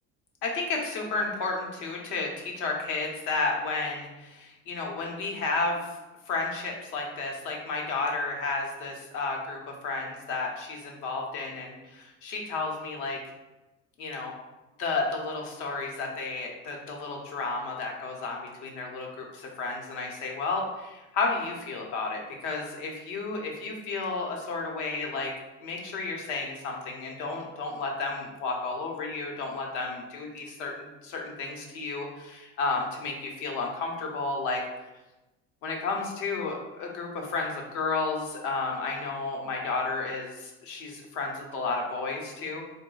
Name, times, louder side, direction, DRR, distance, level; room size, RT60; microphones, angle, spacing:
voice 1, 0.4-5.9 6.3-13.2 14.0-14.3 14.8-20.6 21.1-25.3 25.6-34.9 35.6-42.6, left 3 dB, 65° left, 1 dB, 0.9 m, -32 dB
4.0 x 2.2 x 3.7 m, 1.1 s
cardioid pair, 165°, 32 cm